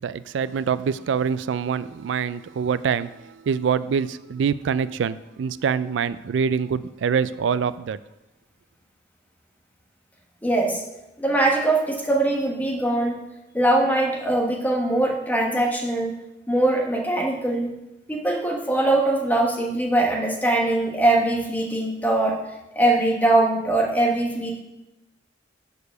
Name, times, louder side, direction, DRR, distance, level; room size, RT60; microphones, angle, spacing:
voice 1, 0.0-8.0, right 6 dB, 75° right, 16 dB, 0.3 m, -25 dB
voice 2, 10.4-10.8 11.2-13.2 13.5-16.2 16.5-17.7 18.1-22.4 22.7-24.6, right 2 dB, 10° left, 0 dB, 1.2 m, -22 dB
6.7 x 4.8 x 6.6 m, 0.96 s
head